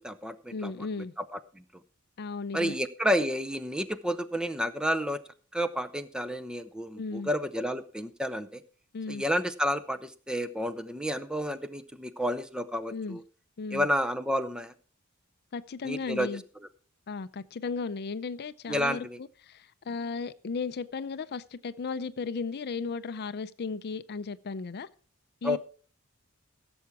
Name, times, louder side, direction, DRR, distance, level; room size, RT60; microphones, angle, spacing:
voice 1, 0.0-0.7 1.3-1.6 2.5-5.2 5.5-8.6 9.1-13.2 13.7-14.7 15.8-16.3 18.7-19.2 25.4-25.6, equal, 5° right, 0.6 m, -30 dB
voice 2, 0.5-1.1 2.2-2.8 7.0-7.3 8.9-9.2 12.9-13.2 13.6-13.9 15.5-16.4 17.1-24.9 25.4-25.6, left 4 dB, 50° left, 0.5 m, -35 dB
16.0 x 7.1 x 4.7 m
head